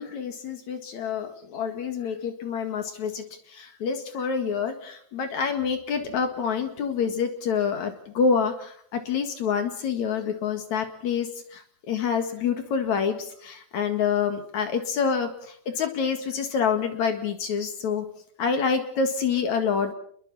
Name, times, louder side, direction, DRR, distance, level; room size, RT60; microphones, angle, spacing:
voice 1, 0.0-18.0 18.4-19.9, left 6 dB, 55° left, 7 dB, 2.7 m, -27 dB
29.5 x 22.0 x 4.2 m, 0.62 s
omnidirectional pair, 4.6 m